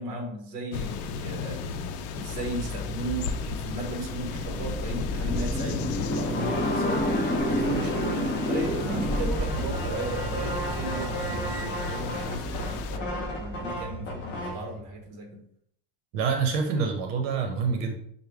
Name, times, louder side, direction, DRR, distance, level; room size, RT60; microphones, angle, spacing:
voice 1, 0.0-1.8 2.2-15.4, right 2 dB, 40° right, 2 dB, 1.1 m, -36 dB
sound 1, 0.7-13.0, left 6 dB, 75° left, 0.6 m, -35 dB
sound 2, 1.9-15.0, equal, 5° right, 0.7 m, -32 dB
sound 3, 5.8-14.7, left 1 dB, 25° left, 0.5 m, -33 dB
voice 2, 16.1-18.0, right 5 dB, 80° right, 3 dB, 0.9 m, -26 dB
5.7 x 2.2 x 3.4 m, 0.69 s
cardioid pair, 175°, 47 cm